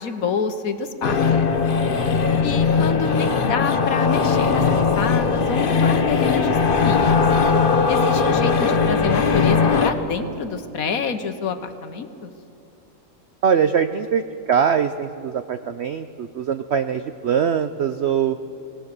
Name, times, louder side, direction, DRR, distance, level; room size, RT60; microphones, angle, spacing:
voice 1, 0.0-1.5 2.4-7.2 7.9-12.3, left 5 dB, 60° left, 8 dB, 1.5 m, -27 dB
sound 1, 1.0-9.9, left 5 dB, 40° left, 1.0 m, -19 dB
voice 2, 13.4-14.2 14.5-18.4, right 7 dB, 65° right, 10 dB, 0.6 m, -22 dB
25.5 x 18.0 x 6.7 m, 2.7 s
omnidirectional pair, 1.7 m